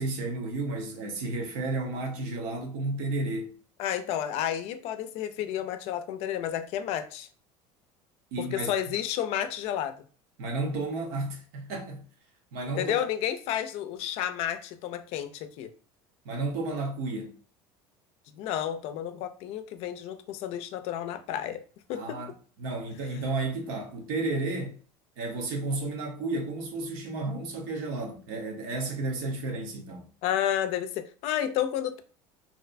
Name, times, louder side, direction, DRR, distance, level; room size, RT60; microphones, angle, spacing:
voice 1, 0.0-3.5 8.3-8.7 10.4-12.0 12.5-13.0 16.2-17.3 21.9-24.8 25.2-30.1, right 2 dB, 85° right, 0.8 m, -32 dB
voice 2, 3.8-7.3 8.4-9.9 12.8-15.7 18.3-21.6 21.9-22.2 30.2-32.0, left 10 dB, 65° left, 0.4 m, -31 dB
2.6 x 2.1 x 2.5 m
supercardioid pair, 120°, 11 cm